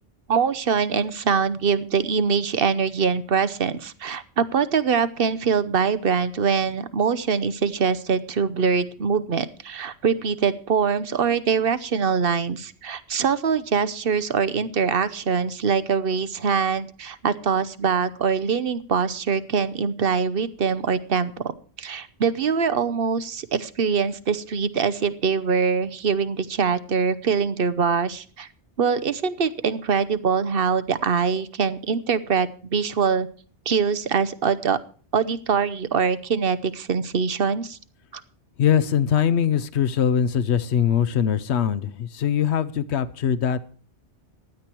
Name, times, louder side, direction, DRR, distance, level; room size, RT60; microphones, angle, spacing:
voice 1, 0.3-21.5 21.8-28.5 28.8-33.3 33.7-34.8 35.1-37.8, right 6 dB, 60° right, 14 dB, 1.0 m, -23 dB
voice 2, 38.6-43.6, left 8 dB, 80° left, 13 dB, 1.0 m, -22 dB
16.0 x 10.5 x 4.5 m, 0.41 s
omnidirectional pair, 1.1 m